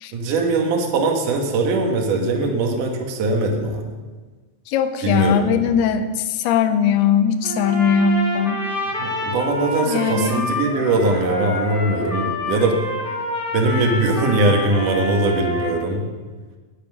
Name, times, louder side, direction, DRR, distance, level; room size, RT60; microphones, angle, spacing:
voice 1, 0.1-3.8 5.0-5.7 9.0-12.8 13.5-16.1, right 2 dB, 60° right, 2 dB, 3.1 m, -21 dB
voice 2, 4.7-8.6 9.8-10.5, left 6 dB, 90° left, 10 dB, 2.8 m, -20 dB
Trumpet, 7.4-15.8, left 1 dB, 40° left, 0.7 m, -27 dB
18.0 x 8.8 x 6.2 m, 1.4 s
omnidirectional pair, 4.4 m